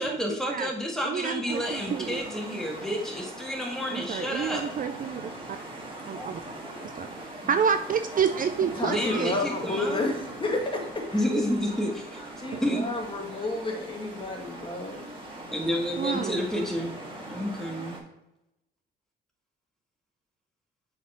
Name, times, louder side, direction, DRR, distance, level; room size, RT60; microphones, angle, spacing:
voice 1, 0.0-4.6 8.8-10.1 11.1-12.0 12.6-12.9 15.5-16.9 17.3-18.0, equal, ahead, -1 dB, 2.0 m, -30 dB
voice 2, 1.0-2.2 3.9-5.6 6.0-6.4 7.0-7.1 7.5-9.3 12.5-12.8 16.0-16.4, right 7 dB, 45° right, 10 dB, 0.4 m, -29 dB
sound 1, 1.5-18.0, right 1 dB, 25° right, 2.0 m, -41 dB
voice 3, 8.7-11.2 12.4-15.1, left 2 dB, 25° left, 1 dB, 1.7 m, -31 dB
7.2 x 4.7 x 4.3 m, 0.88 s
cardioid pair, 90°, 20 cm